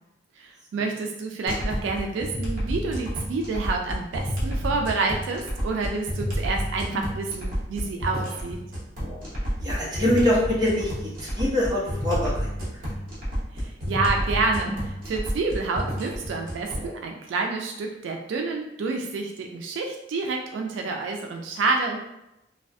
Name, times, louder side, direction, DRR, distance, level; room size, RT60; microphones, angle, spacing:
voice 1, 0.4-8.6 13.5-22.0, right 3 dB, 80° right, 2 dB, 0.3 m, -28 dB
sound 1, 1.5-16.9, equal, 50° right, 0.8 m, -30 dB
voice 2, 9.6-12.5 12.8-12.9, left 1 dB, 25° right, -7 dB, 0.8 m, -24 dB
2.3 x 2.1 x 2.5 m, 0.89 s
head